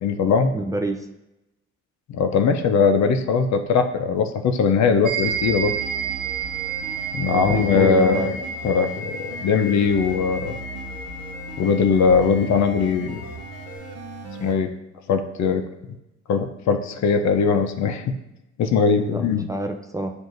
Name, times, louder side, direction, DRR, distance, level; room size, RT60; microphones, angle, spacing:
voice 1, 0.0-0.5 2.1-5.7 7.1-8.4 8.6-10.5 11.6-13.2 14.4-14.7 15.1-15.6 16.3-18.1 18.6-19.5, left 5 dB, 65° left, 7 dB, 0.6 m, -20 dB
voice 2, 0.5-1.1 7.2-8.3 19.0-20.1, right 2 dB, 10° right, 3 dB, 0.3 m, -28 dB
sound 1, 5.1-13.7, right 5 dB, 80° right, 0.9 m, -32 dB
sound 2, 5.2-14.5, right 2 dB, 55° right, 0.8 m, -38 dB
7.8 x 2.6 x 2.5 m, 0.94 s
cardioid pair, 90°, 30 cm